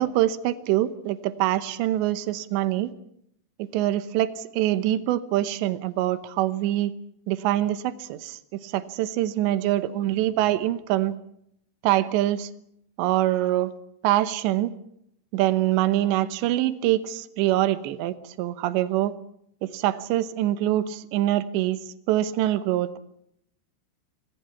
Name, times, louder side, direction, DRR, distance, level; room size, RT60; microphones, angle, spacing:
voice 1, 0.0-2.9 3.6-6.9 7.3-11.1 11.8-12.5 13.0-13.7 14.0-14.7 15.3-19.1 19.6-21.8 22.1-23.0, right 14 dB, 80° right, 11 dB, 3.2 m, -24 dB
27.0 x 19.5 x 5.9 m, 0.74 s
omnidirectional pair, 5.2 m